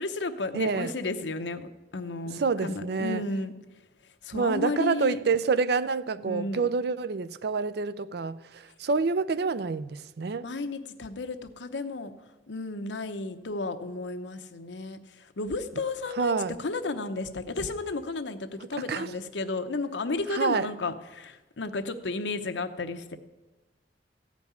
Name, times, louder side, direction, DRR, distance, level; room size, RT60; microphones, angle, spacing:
voice 1, 0.0-1.7 1.9-3.5 4.2-5.2 6.2-6.7 10.4-12.1 12.5-23.2, left 3 dB, 90° left, 0.9 m, -33 dB
voice 2, 0.5-0.9 2.3-3.2 4.3-10.4 16.2-16.5 18.9-19.1 20.3-20.7, right 4 dB, 60° right, 0.5 m, -27 dB
15.0 x 5.3 x 9.3 m
head